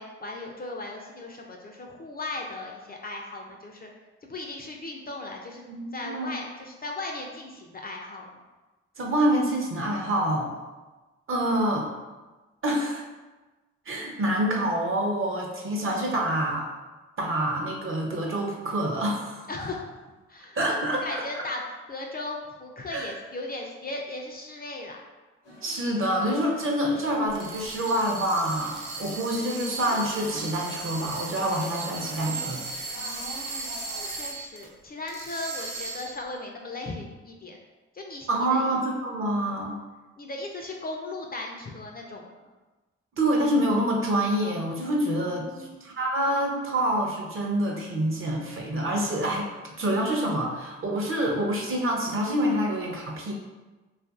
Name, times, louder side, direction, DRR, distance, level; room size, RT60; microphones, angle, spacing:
voice 1, 0.0-3.9 4.2-5.6 5.9-8.4 19.5-19.9 20.3-20.6 21.0-21.6 21.9-25.0 33.0-33.7 34.1-37.6 37.9-38.7 39.4-39.8 40.2-42.3 45.1-45.7, left 2 dB, 30° left, 0 dB, 0.4 m, -37 dB
voice 2, 5.7-6.3 9.0-10.5 11.3-11.9 12.6-13.0 13.9-16.7 17.2-19.4 20.6-21.4 22.9-23.1 25.5-32.6 38.3-39.8 43.2-49.5 49.8-53.3, right 1 dB, 40° right, -1 dB, 0.7 m, -27 dB
sound 1, 25.4-34.1, left 2 dB, 85° left, 0.6 m, -47 dB
sound 2, 27.3-34.7 35.1-36.3, right 3 dB, 80° right, 0.5 m, -37 dB
2.5 x 2.4 x 2.4 m, 1.2 s
hypercardioid pair, 40°, 31 cm